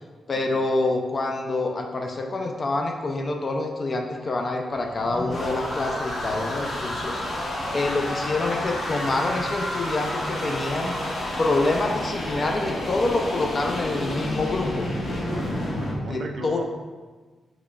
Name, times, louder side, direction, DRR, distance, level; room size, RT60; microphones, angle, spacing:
voice 1, 0.3-10.9 11.4-14.9 16.1-16.6, left 2 dB, 40° left, 2 dB, 0.3 m, -26 dB
sound 1, 4.7-16.0, left 1 dB, 65° left, 0.7 m, -30 dB
voice 2, 15.2-16.6, right 3 dB, 65° right, 5 dB, 0.3 m, -37 dB
3.9 x 3.0 x 2.3 m, 1.4 s
cardioid pair, 85°, 0 cm